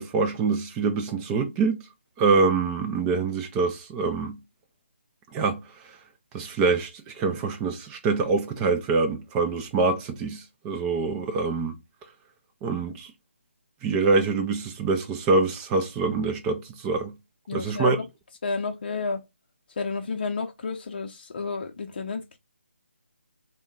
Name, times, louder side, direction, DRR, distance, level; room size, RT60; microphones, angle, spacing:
voice 1, 0.0-1.8 2.2-4.4 5.3-5.6 6.3-11.8 12.6-13.1 13.8-17.1 17.5-18.0, right 4 dB, 10° right, 0.3 m, -25 dB
voice 2, 17.5-18.1 18.4-19.2 19.8-22.4, left 4 dB, 45° left, 0.6 m, -31 dB
3.5 x 2.2 x 3.6 m
figure-of-eight pair, 160°, 7 cm